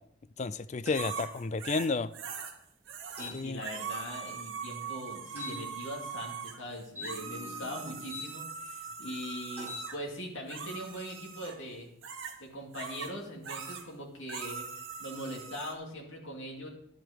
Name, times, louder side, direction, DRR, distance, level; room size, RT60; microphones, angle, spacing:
voice 1, 0.4-2.1 3.3-3.6, left 4 dB, 35° left, 15 dB, 0.3 m, -31 dB
sound 1, 0.8-1.1 3.2-3.4 5.3-5.6 6.9-8.3 9.5-9.9, left 4 dB, 10° right, 4.2 m, -43 dB
sound 2, 0.9-2.5 2.9-3.3 3.6-10.0 10.5-11.6 12.0-12.4 12.7-13.1 13.4-13.9 14.3-15.7, right 6 dB, 70° right, 1.4 m, -41 dB
voice 2, 3.1-11.9 12.4-14.7 15.0-16.7, equal, 65° left, -1 dB, 2.5 m, -41 dB
11.0 x 7.8 x 5.1 m, 0.73 s
head